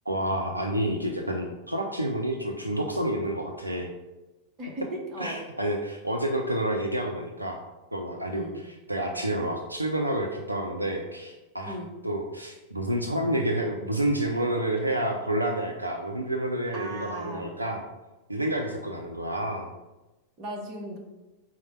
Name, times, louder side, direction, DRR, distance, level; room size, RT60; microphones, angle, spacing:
voice 1, 0.1-3.9 5.2-7.6 7.9-8.5 8.9-11.8 12.0-17.8 18.3-19.7, right 1 dB, 85° right, 2 dB, 0.3 m, -29 dB
voice 2, 4.6-5.4 8.3-8.6 11.7-11.9 16.7-17.6 20.4-21.0, right 1 dB, 35° right, 0 dB, 0.9 m, -36 dB
4.4 x 2.1 x 4.3 m, 1.1 s
figure-of-eight pair, 90°, 0 cm